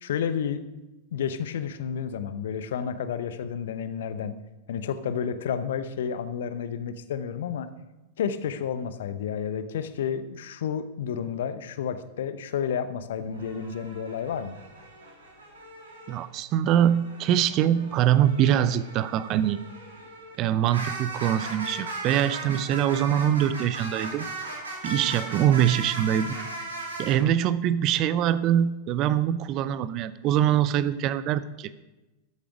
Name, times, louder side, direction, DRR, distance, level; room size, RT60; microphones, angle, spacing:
voice 1, 0.0-0.6 1.1-4.4 4.7-7.7 8.2-14.6, left 7 dB, 60° left, 12 dB, 0.8 m, -31 dB
sound 1, 13.3-16.2 16.6-27.2, right 2 dB, 70° right, 2.8 m, -38 dB
voice 2, 16.1-19.6 20.4-24.3 24.8-26.7 27.0-31.7, right 10 dB, 40° right, 16 dB, 0.6 m, -23 dB
14.0 x 8.7 x 4.9 m, 1.0 s
figure-of-eight pair, 90°, 0 cm